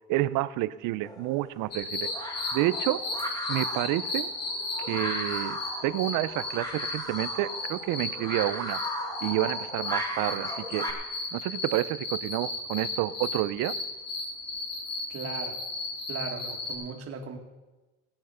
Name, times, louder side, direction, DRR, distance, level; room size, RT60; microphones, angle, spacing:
voice 1, 0.1-2.1 2.5-3.0 3.5-4.3 4.8-8.8 9.2-10.9 11.3-13.7, right 16 dB, 85° right, 16 dB, 0.6 m, -29 dB
sound 1, 1.0-10.9, equal, 10° left, 2.2 m, -37 dB
sound 2, 1.7-16.7, left 2 dB, 55° left, 3.4 m, -35 dB
voice 2, 15.1-15.6 16.1-17.4, right 5 dB, 50° right, 3 dB, 2.1 m, -37 dB
17.5 x 9.0 x 5.7 m, 1.1 s
cardioid pair, 130°, 31 cm